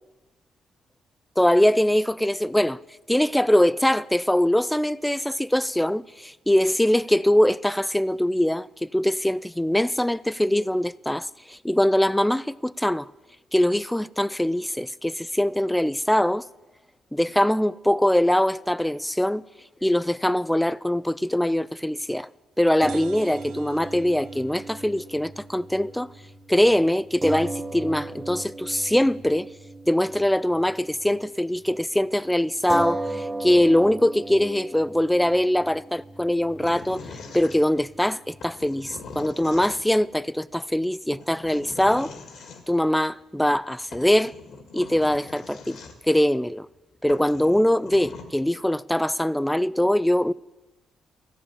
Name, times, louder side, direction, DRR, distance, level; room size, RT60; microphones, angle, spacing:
voice 1, 1.4-2.8 3.1-13.1 13.5-16.4 17.1-19.4 19.8-22.3 22.6-26.1 26.5-29.5 29.9-37.0 37.3-42.1 42.7-44.3 44.7-45.8 46.1-46.7 47.0-50.3, left 1 dB, 5° left, 0.4 m, -22 dB
sound 1, 22.8-31.3 31.6-31.8 32.7-39.2, right 2 dB, 25° right, 0.9 m, -37 dB
sound 2, 22.9-26.4, right 11 dB, 90° right, 0.9 m, -51 dB
sound 3, 36.6-38.0 38.4-40.1 41.1-42.6 43.6-43.7 43.9-46.2 46.7-46.8 47.1-48.2, left 4 dB, 65° left, 2.0 m, -42 dB
14.0 x 7.4 x 10.0 m
cardioid pair, 90°, 0 cm